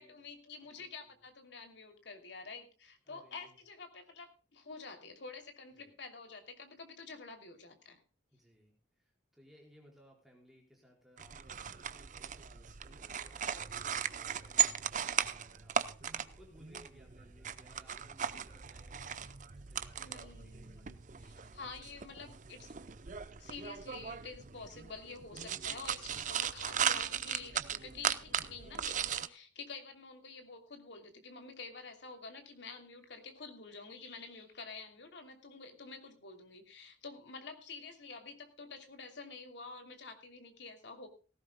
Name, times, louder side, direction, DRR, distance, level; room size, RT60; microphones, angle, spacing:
voice 1, 0.0-8.0 20.0-20.9 21.2-22.8 23.4-41.1, left 4 dB, 65° left, 6 dB, 2.9 m, -49 dB
voice 2, 0.6-1.2 3.1-3.6 5.7-5.9 8.3-15.8 16.1-22.4, equal, ahead, -1 dB, 4.6 m, -63 dB
sound 1, 11.2-29.3, right 8 dB, 40° right, 0.7 m, -37 dB
18.0 x 16.0 x 2.2 m, 0.35 s
head